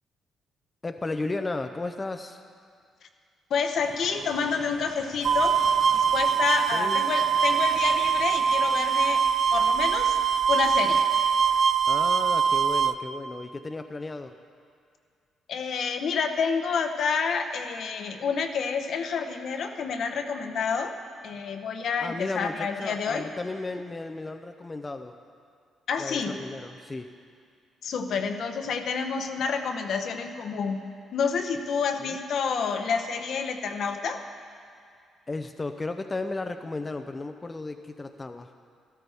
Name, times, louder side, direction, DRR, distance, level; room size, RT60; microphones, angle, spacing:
voice 1, 0.8-2.4 6.7-7.0 11.9-14.3 22.0-25.2 26.0-27.1 32.0-32.2 35.3-38.5, left 2 dB, 25° left, 7 dB, 0.5 m, -34 dB
voice 2, 3.5-5.6 5.9-9.2 9.5-10.1 10.5-11.1 15.5-20.9 21.2-23.2 25.9-26.4 27.8-30.8 31.1-34.2, left 5 dB, 65° left, 5 dB, 0.9 m, -28 dB
sound 1, 3.8-8.8, right 3 dB, 30° right, 0.9 m, -47 dB
sound 2, 5.2-12.9, right 6 dB, 50° right, 0.3 m, -23 dB
13.5 x 13.0 x 3.5 m, 2.2 s
cardioid pair, 90°, 0 cm